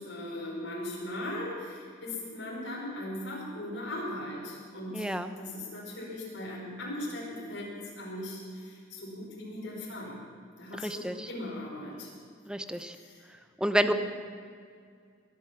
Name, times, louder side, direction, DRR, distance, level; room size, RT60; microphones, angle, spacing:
voice 1, 0.0-5.0 5.4-10.2 10.6-12.1 12.8-13.2 13.8-13.9, left 1 dB, 85° left, -5 dB, 5.2 m, -38 dB
voice 2, 4.9-5.3 10.7-11.3 12.5-13.0 13.6-13.9, equal, 5° right, 9 dB, 0.7 m, -29 dB
22.0 x 10.5 x 5.9 m, 2.2 s
head